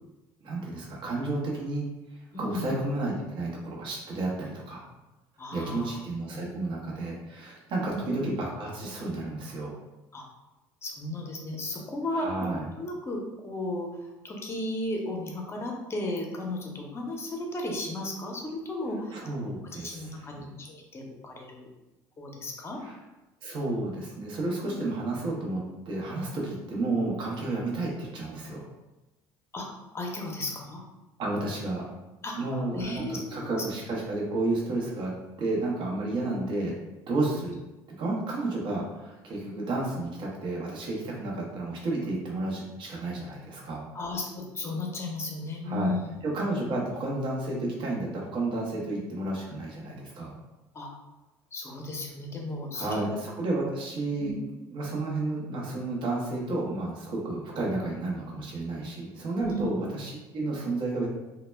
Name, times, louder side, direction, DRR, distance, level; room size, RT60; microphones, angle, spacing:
voice 1, 0.4-1.9 2.3-4.8 5.5-9.7 12.1-12.6 19.1-20.5 22.8-22.9 23.4-28.6 31.2-31.9 32.4-35.1 35.4-36.7 37.1-37.5 38.0-43.8 45.6-45.9 46.2-50.3 52.7-54.3 54.7-61.1, right 2 dB, 60° right, -3 dB, 0.8 m, -31 dB
voice 2, 2.3-2.7 5.4-5.9 6.3-6.5 7.8-8.2 10.1-10.2 10.8-21.7 22.2-22.8 24.7-24.8 29.5-29.7 29.9-30.8 32.2-33.6 43.9-46.2 50.7-50.9 51.5-53.2 54.2-54.3 59.4-59.7, left 2 dB, 25° left, 1 dB, 0.6 m, -35 dB
2.1 x 2.1 x 3.2 m, 1.0 s
supercardioid pair, 95°, 9 cm